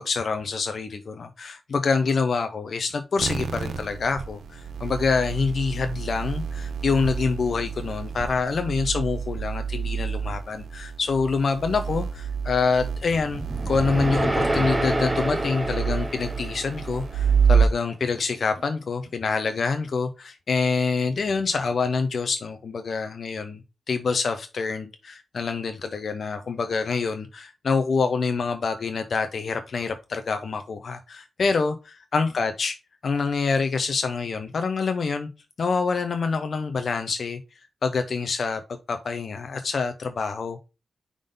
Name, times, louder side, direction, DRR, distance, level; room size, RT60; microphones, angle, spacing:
voice 1, 0.0-32.8 33.0-35.3 35.6-37.4 37.8-38.6 38.9-40.6, left 4 dB, 55° left, 0.6 m, -26 dB
sound 1, 3.2-17.7, right 6 dB, 85° right, 0.5 m, -28 dB
sound 2, 13.0-17.3, right 1 dB, 20° right, 0.7 m, -28 dB
5.4 x 3.7 x 5.2 m
wide cardioid pair, 140°, 0 cm